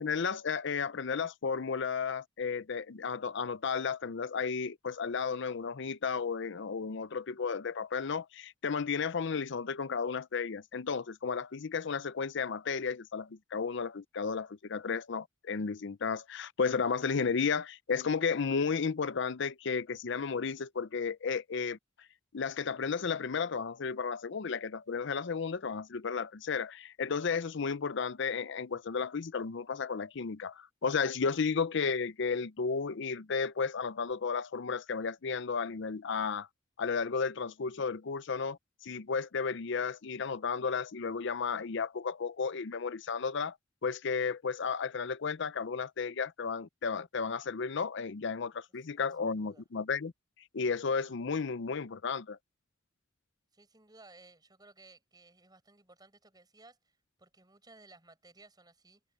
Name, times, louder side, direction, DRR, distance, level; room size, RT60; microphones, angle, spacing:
voice 1, 0.0-21.8 22.3-36.5 36.8-38.6 38.8-43.6 43.8-50.1 50.5-52.4, left 5 dB, 65° left, 0.6 m, -33 dB
voice 2, 48.9-49.7 53.5-59.0, right 2 dB, 20° right, 6.9 m, -59 dB
head